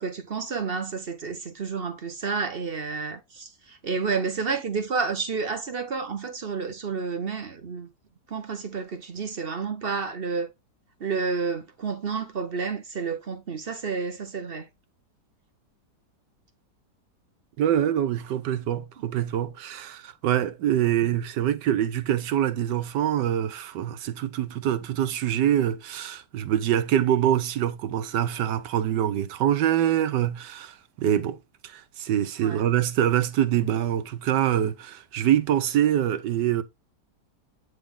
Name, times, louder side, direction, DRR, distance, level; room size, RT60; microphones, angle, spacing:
voice 1, 0.0-7.9 8.3-10.5 11.0-14.7 32.4-32.6, right 5 dB, 45° right, 0.9 m, -30 dB
voice 2, 17.6-31.4 31.6-36.6, right 11 dB, 90° right, 1.4 m, -25 dB
9.3 x 3.5 x 3.6 m
omnidirectional pair, 1.8 m